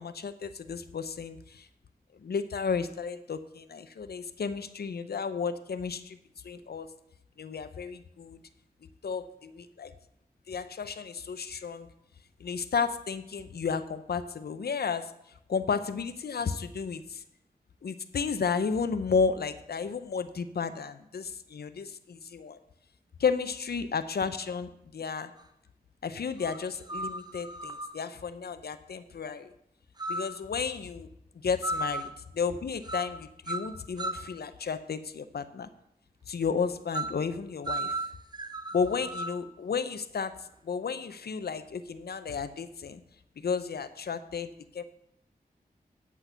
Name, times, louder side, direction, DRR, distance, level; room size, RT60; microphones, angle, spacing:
voice 1, 0.0-1.7 2.1-6.2 6.4-6.9 7.4-8.4 9.0-9.9 10.5-11.9 12.4-15.1 15.5-17.2 17.8-22.6 23.2-25.3 26.0-29.5 30.1-31.1 31.4-35.7 36.3-38.0 38.7-40.4 40.6-43.0 43.4-44.8, left 5 dB, 90° left, 11 dB, 0.6 m, -33 dB
sound 1, 25.4-25.5 26.4-28.0 30.0-30.4 31.6-32.2 32.8-33.2 33.5-34.3 36.9-37.2 37.7-39.4, right 1 dB, 25° right, 0.9 m, -35 dB
8.2 x 6.0 x 7.8 m, 0.78 s
wide cardioid pair, 55°, 16 cm